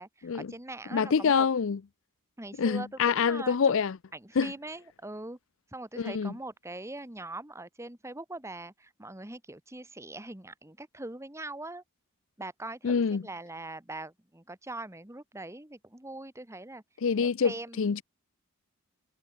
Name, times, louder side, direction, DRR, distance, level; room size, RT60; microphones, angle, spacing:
voice 1, 0.0-1.5 2.4-3.6 4.1-5.4 5.7-11.8 12.4-16.8 17.2-18.0, right 2 dB, 15° right, 1.5 m, -42 dB
voice 2, 0.9-1.8 2.6-4.0 4.4-4.5 6.0-6.3 12.8-13.2 17.0-18.0, left 6 dB, 60° left, 0.5 m, -26 dB
head